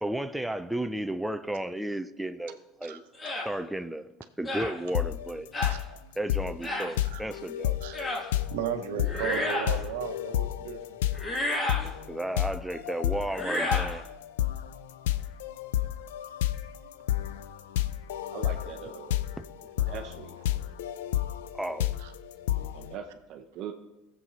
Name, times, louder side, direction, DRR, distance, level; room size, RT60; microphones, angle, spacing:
voice 1, 0.0-3.0 3.4-4.1 4.4-5.5 6.2-7.8 12.1-14.0 21.5-22.0, right 1 dB, 5° right, 0.4 m, -33 dB
sound 1, 3.2-3.5 4.4-4.7 5.5-5.8 6.6-6.9 7.9-8.3 9.0-9.8 11.1-11.9 13.3-13.9, left 1 dB, 25° left, 2.2 m, -31 dB
sound 2, 4.9-5.3 5.6-23.0, left 12 dB, 85° left, 0.4 m, -31 dB
voice 2, 7.8-11.0 18.3-18.4 22.0-22.1, right 8 dB, 85° right, 0.9 m, -35 dB
voice 3, 9.1-9.4 15.8-16.0 18.3-19.2 19.9-20.4 22.7-23.7, right 8 dB, 55° right, 0.7 m, -41 dB
16.0 x 7.4 x 2.8 m
supercardioid pair, 105°, 0 cm